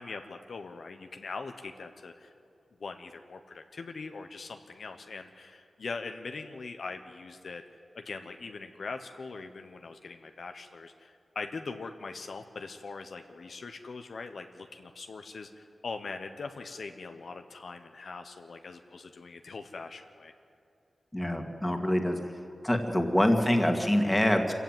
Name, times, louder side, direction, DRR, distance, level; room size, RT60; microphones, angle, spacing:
voice 1, 0.0-2.3 2.8-7.6 7.9-20.3, left 4 dB, 70° left, 6 dB, 1.1 m, -41 dB
voice 2, 21.1-22.2 22.6-24.5, left 1 dB, 10° left, 4 dB, 2.1 m, -25 dB
25.5 x 15.0 x 9.2 m, 2.5 s
wide cardioid pair, 90°, 0 cm